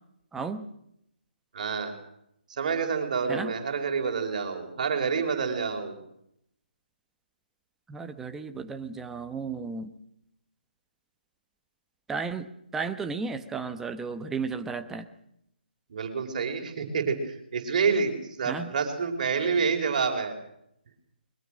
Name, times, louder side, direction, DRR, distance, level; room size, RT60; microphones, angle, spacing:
voice 1, 0.3-0.7 3.3-3.5 7.9-9.9 12.1-15.1 18.5-18.7, right 4 dB, 5° right, 8 dB, 1.1 m, -34 dB
voice 2, 1.5-1.9 2.5-6.0 15.9-20.4, right 5 dB, 45° right, 4 dB, 5.2 m, -28 dB
22.5 x 21.5 x 6.4 m, 0.75 s
figure-of-eight pair, 150°, 6 cm